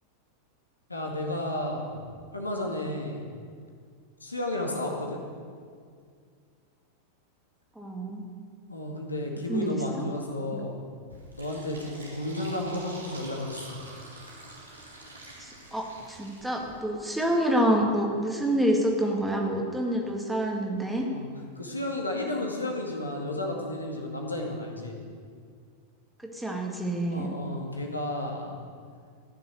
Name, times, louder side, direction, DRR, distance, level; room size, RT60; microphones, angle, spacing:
voice 1, 0.9-1.9 2.3-3.2 4.2-5.2 8.7-10.8 11.4-13.8 21.1-21.3 21.6-25.0 27.1-28.6, left 1 dB, 80° left, 0 dB, 2.1 m, -32 dB
voice 2, 7.8-8.2 9.5-10.1 10.5-10.6 15.4-21.1 26.2-27.3, right 1 dB, 5° right, 1 dB, 2.0 m, -27 dB
Fill (with liquid), 11.1-16.8, right 2 dB, 80° right, 3.1 m, -46 dB
14.5 x 6.9 x 9.2 m, 2.1 s
figure-of-eight pair, 90°, 0 cm